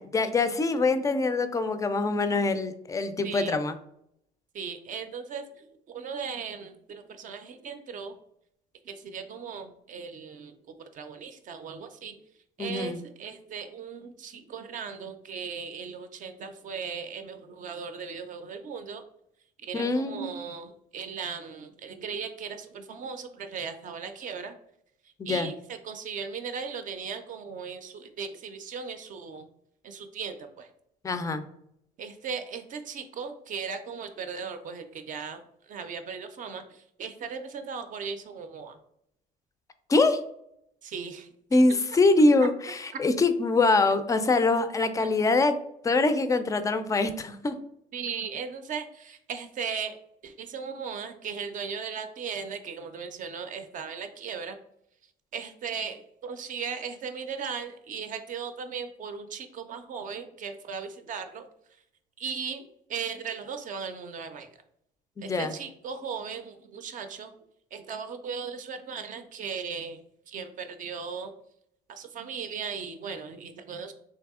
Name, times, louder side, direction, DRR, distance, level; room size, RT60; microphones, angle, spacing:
voice 1, 0.0-3.8 12.6-13.0 19.7-20.4 25.3-25.5 31.0-31.4 39.9-40.2 41.5-45.6 45.8-47.6 65.2-65.5, left 3 dB, 20° left, 10 dB, 0.3 m, -24 dB
voice 2, 3.2-3.6 4.5-8.1 8.8-12.2 12.6-19.0 19.6-24.5 25.2-29.5 29.8-30.7 32.0-38.8 40.8-41.3 45.0-45.1 47.9-49.9 50.2-54.6 55.3-61.5 62.2-64.5 65.2-67.3 67.7-70.0 70.3-71.3 71.9-73.9, right 6 dB, 50° right, 8 dB, 0.5 m, -37 dB
3.4 x 2.7 x 3.5 m, 0.75 s
cardioid pair, 110°, 17 cm